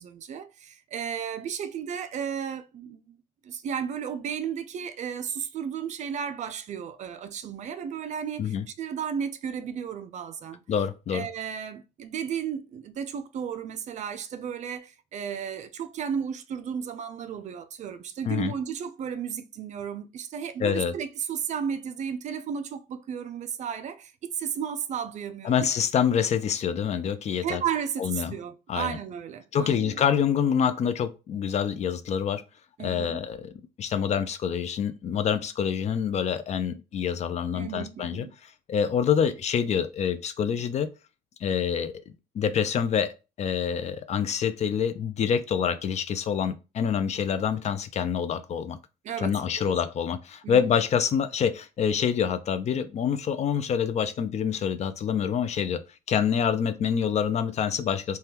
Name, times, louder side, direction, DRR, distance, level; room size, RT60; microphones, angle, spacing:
voice 1, 0.0-3.2 3.4-10.6 11.1-25.7 27.4-30.0 32.8-33.2 37.5-38.3 49.0-49.8 50.4-50.7, right 8 dB, 45° right, 0.4 m, -34 dB
voice 2, 10.7-11.3 18.2-18.5 20.6-20.9 25.4-27.6 28.0-28.3 28.7-29.0 29.5-32.4 32.8-33.5 33.8-40.9 41.4-41.9 42.3-48.8 49.2-55.8 56.1-58.2, left 7 dB, 40° left, 0.4 m, -26 dB
3.4 x 2.3 x 2.8 m
cardioid pair, 110°, 17 cm